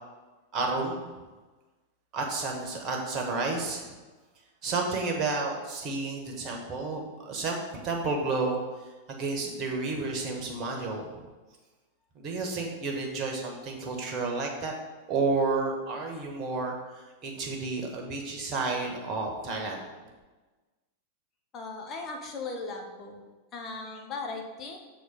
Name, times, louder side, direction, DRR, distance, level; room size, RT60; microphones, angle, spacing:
voice 1, 0.5-1.1 2.1-3.9 4.6-8.6 9.1-11.3 12.1-14.7 15.1-19.8, right 3 dB, 35° right, 1 dB, 1.4 m, -31 dB
voice 2, 21.5-23.2 23.5-24.8, left 3 dB, 30° left, 2 dB, 1.1 m, -37 dB
6.6 x 4.0 x 5.5 m, 1.2 s
figure-of-eight pair, 90°, 0 cm